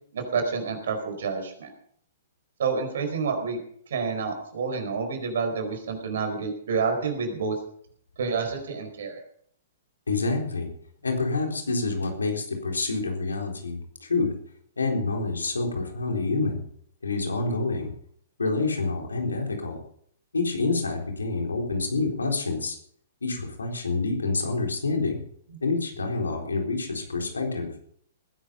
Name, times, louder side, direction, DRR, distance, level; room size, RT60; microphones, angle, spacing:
voice 1, 0.1-1.7 2.6-3.6 3.9-7.5 8.2-9.2, right 5 dB, 65° right, 5 dB, 4.8 m, -28 dB
voice 2, 10.1-10.7 11.0-14.3 14.8-16.6 17.0-17.9 18.4-19.8 20.3-22.8 23.2-25.2 25.6-27.7, left 3 dB, 80° left, 2 dB, 3.9 m, -27 dB
19.5 x 11.0 x 5.3 m, 0.64 s
figure-of-eight pair, 115°, 0 cm